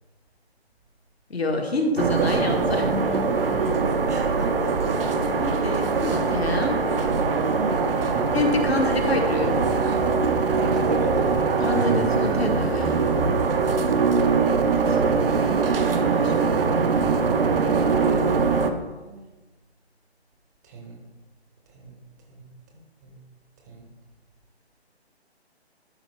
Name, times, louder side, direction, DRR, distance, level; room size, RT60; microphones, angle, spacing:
voice 1, 1.3-2.9 5.4-6.8 8.3-9.6 11.6-13.0 15.2-16.6, left 2 dB, 70° left, 3 dB, 1.6 m, -27 dB
sound 1, 2.0-18.7, right 4 dB, 60° right, 0.7 m, -22 dB
voice 2, 2.2-2.9 4.1-4.7 5.7-6.0 8.1-8.3 9.4-9.8 10.6-11.4 13.9-14.1 14.8-15.6 18.0-19.2 20.6-21.0 21.7-21.9 22.3-22.5 22.7-23.2 23.7-23.8, right 2 dB, 15° right, 1 dB, 0.8 m, -35 dB
12.0 x 4.2 x 3.3 m, 1.2 s
figure-of-eight pair, 145°, 33 cm